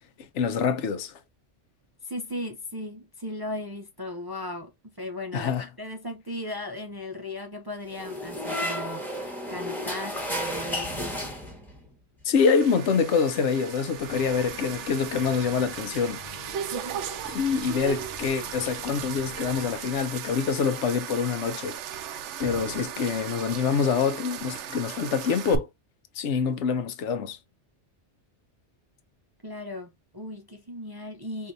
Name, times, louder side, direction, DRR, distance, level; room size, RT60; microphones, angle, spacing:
voice 1, 0.3-1.2 5.3-5.7 12.2-16.2 17.3-21.8 22.4-25.7 26.2-27.4, left 6 dB, 80° left, 1.0 m, -25 dB
voice 2, 2.0-4.7 5.0-11.2 16.7-17.0 29.4-31.5, left 1 dB, 30° right, 0.4 m, -37 dB
sound 1, 7.9-11.8, equal, ahead, 1.1 m, -32 dB
sound 2, 12.4-25.6, right 9 dB, 80° right, 0.9 m, -37 dB
sound 3, 13.9-19.8, left 4 dB, 50° left, 1.0 m, -46 dB
4.6 x 2.7 x 2.5 m
omnidirectional pair, 1.2 m